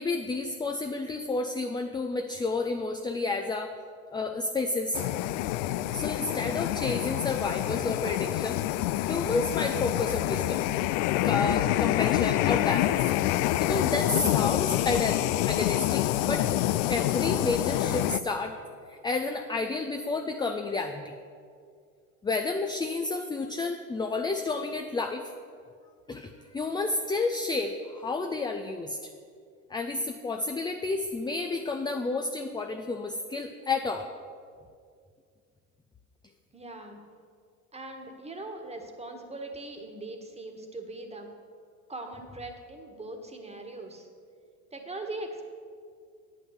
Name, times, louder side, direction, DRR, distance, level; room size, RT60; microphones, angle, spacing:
voice 1, 0.0-3.7 4.1-5.0 5.9-8.6 9.1-10.6 11.2-13.0 13.6-16.6 16.9-18.6 18.9-21.2 22.2-25.2 26.1-29.0 29.7-34.1, left 3 dB, 10° left, 5 dB, 0.5 m, -30 dB
sound 1, 4.9-18.2, left 14 dB, 65° left, 0.5 m, -27 dB
voice 2, 36.5-37.0 37.7-41.3 41.9-44.1 44.7-45.4, right 2 dB, 15° right, 4 dB, 1.6 m, -40 dB
9.0 x 5.9 x 8.1 m, 2.2 s
hypercardioid pair, 80°, 43 cm